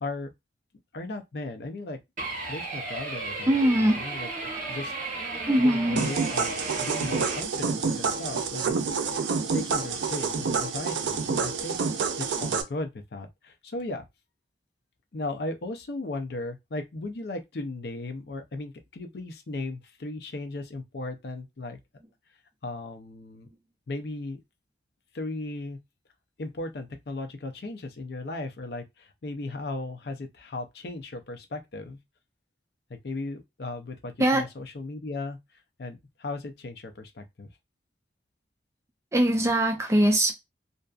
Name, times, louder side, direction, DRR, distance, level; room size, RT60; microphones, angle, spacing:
voice 1, 0.0-0.3 0.9-2.0 2.5-4.3 4.7-5.1 5.6-8.8 9.1-9.3 9.5-14.0 15.1-21.8 22.6-23.5 23.9-24.4 25.1-25.8 26.4-32.0 32.9-37.5, left 2 dB, 65° left, 0.5 m, -36 dB
sound 1, 2.2-7.4, right 3 dB, 45° right, 0.9 m, -34 dB
voice 2, 3.5-4.0 5.5-6.0 34.2-34.4 39.1-40.3, right 1 dB, 15° right, 0.4 m, -22 dB
sound 2, 6.0-12.6, right 5 dB, 85° right, 0.4 m, -28 dB
2.5 x 2.3 x 2.4 m
head